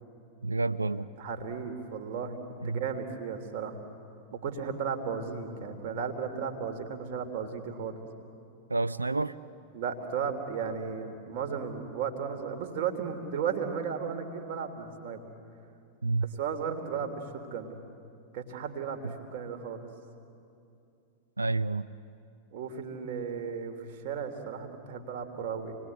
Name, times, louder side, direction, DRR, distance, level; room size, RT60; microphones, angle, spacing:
voice 1, 0.4-1.1 2.6-2.8 8.7-9.4 16.0-16.3 19.0-19.1 21.4-21.9, right 3 dB, 80° right, 17 dB, 0.6 m, -29 dB
voice 2, 1.2-3.8 4.3-8.0 9.7-15.2 16.4-17.8 18.3-19.9 22.5-25.8, right 6 dB, 50° right, 4 dB, 3.2 m, -35 dB
29.0 x 20.5 x 9.6 m, 2.6 s
figure-of-eight pair, 90°, 0 cm